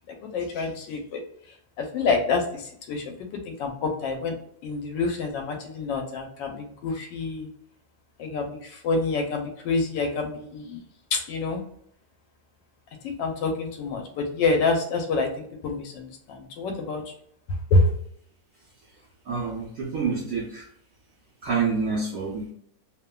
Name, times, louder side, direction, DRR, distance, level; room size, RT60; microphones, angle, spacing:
voice 1, 0.1-1.2 1.5-3.1 3.4-4.4 4.6-7.5 8.2-10.8 11.1-11.6 13.0-17.1 17.5-17.9, left 3 dB, 80° left, 4 dB, 1.2 m, -27 dB
voice 2, 19.3-20.7 21.4-22.5, right 5 dB, 85° right, -2 dB, 0.7 m, -27 dB
3.0 x 2.1 x 2.2 m, 0.68 s
omnidirectional pair, 2.0 m